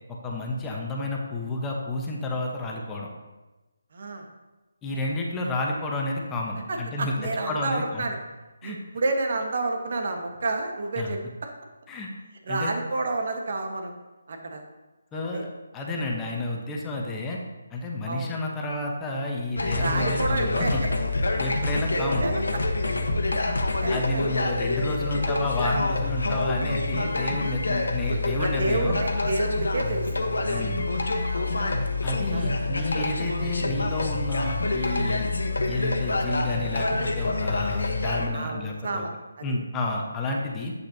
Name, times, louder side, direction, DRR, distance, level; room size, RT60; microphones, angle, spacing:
voice 1, 0.2-3.1 4.8-7.1 7.5-8.0 8.6-8.8 11.0-11.1 11.9-12.1 12.5-12.7 15.1-15.5 15.7-17.4 17.7-20.8 21.4-22.3 23.9-29.0 30.4-30.9 31.6-35.3 35.6-39.0 39.4-40.7, left 2 dB, 15° left, -1 dB, 1.1 m, -30 dB
voice 2, 3.9-4.3 6.7-8.2 8.6-11.5 12.5-13.9 14.3-14.6 15.1-15.4 18.0-18.3 19.8-20.7 21.9-22.6 23.8-24.3 28.4-30.2 30.5-30.7 31.3-31.6 32.3-32.5 38.3-39.4 40.3-40.4, right 2 dB, 50° right, 3 dB, 1.3 m, -30 dB
sound 1, 19.6-38.3, left 2 dB, 70° left, 1.2 m, -27 dB
10.5 x 8.1 x 2.8 m, 1.1 s
figure-of-eight pair, 150°, 0 cm